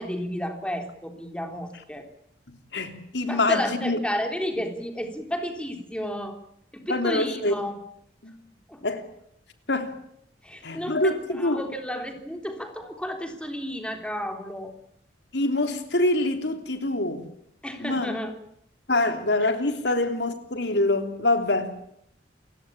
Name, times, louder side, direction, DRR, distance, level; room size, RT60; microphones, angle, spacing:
voice 1, 0.0-2.1 3.3-6.4 6.7-7.7 8.7-8.8 10.4-14.7 17.6-18.3, equal, 5° left, 3.7 m, -32 dB
voice 2, 2.5-4.0 6.9-7.7 8.2-8.3 8.8-9.0 9.7-9.9 10.6-11.6 15.3-17.2 17.8-18.1 18.9-21.7, left 2 dB, 75° left, 3.3 m, -25 dB
29.0 x 16.5 x 8.8 m
head